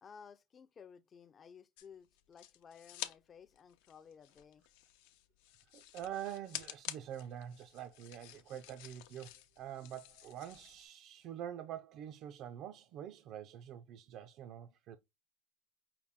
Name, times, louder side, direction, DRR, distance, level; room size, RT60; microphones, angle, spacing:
voice 1, 0.0-4.7, left 6 dB, 30° left, 0.4 m, -56 dB
sound 1, 1.8-3.2 3.5-10.8, left 13 dB, 80° left, 0.6 m, -49 dB
voice 2, 5.6-15.0, right 10 dB, 55° right, 0.4 m, -46 dB
5.6 x 2.2 x 3.5 m
supercardioid pair, 125°, 0 cm